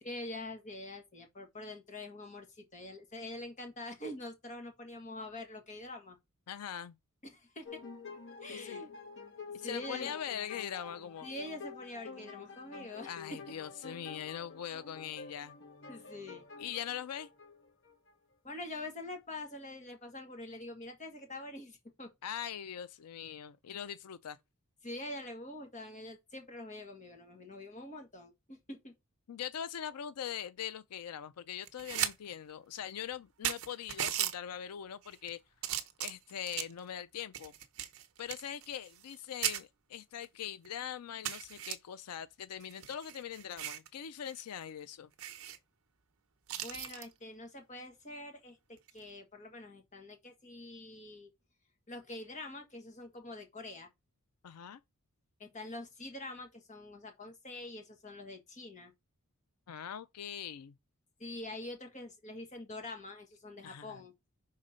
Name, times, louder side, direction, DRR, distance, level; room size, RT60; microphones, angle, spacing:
voice 1, 0.0-6.2 7.2-7.8 8.4-8.9 9.6-10.1 11.2-13.4 15.9-16.5 18.4-22.1 24.8-28.9 46.5-51.3 51.9-53.9 55.4-58.9 61.2-64.1, left 2 dB, 35° left, 1.5 m, -45 dB
voice 2, 6.5-7.0 8.5-8.8 9.5-11.3 13.0-15.6 16.6-17.3 22.2-24.4 29.3-35.4 35.6-37.5 38.2-45.1 54.4-54.8 59.7-60.7 63.6-64.0, left 9 dB, 90° left, 0.4 m, -42 dB
sound 1, 7.7-18.1, left 5 dB, 55° left, 1.1 m, -49 dB
sound 2, 31.6-32.1 32.5-32.6 33.1-33.2 33.4-34.3 35.0-35.3 35.6-36.8 37.3-39.2 39.4-39.6 40.2-40.3 40.6-40.7 41.2-41.7 42.6-43.9 44.3-44.4 44.7-44.8 45.2-45.6 46.5-47.1 48.8-49.0, right 11 dB, 65° right, 0.8 m, -37 dB
5.7 x 3.7 x 5.0 m
head